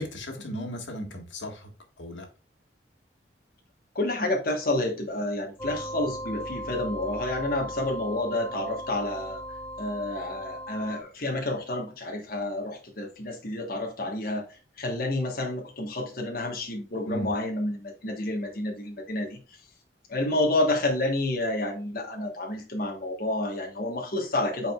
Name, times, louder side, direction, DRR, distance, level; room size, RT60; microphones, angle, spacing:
voice 1, 0.0-1.7 2.0-2.3 17.1-17.3, equal, 85° left, 3 dB, 1.7 m, -35 dB
voice 2, 3.9-9.4 9.8-19.4 20.1-24.7, left 1 dB, 50° left, 1 dB, 1.3 m, -29 dB
sound 1, 5.6-11.0, equal, 15° left, 0.8 m, -37 dB
8.8 x 4.6 x 2.4 m, 0.34 s
head